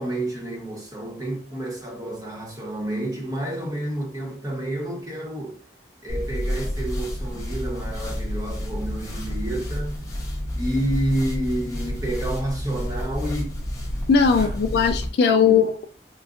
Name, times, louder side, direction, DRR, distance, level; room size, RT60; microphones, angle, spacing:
voice 1, 0.0-5.6 6.0-10.0 10.5-13.6 14.3-14.6 15.3-15.7, right 1 dB, 20° right, 1.2 m, -29 dB
sound 1, 6.1-15.1, left 1 dB, 20° left, 0.9 m, -30 dB
voice 2, 14.1-15.9, left 6 dB, 65° left, 0.3 m, -19 dB
3.8 x 2.4 x 2.4 m
head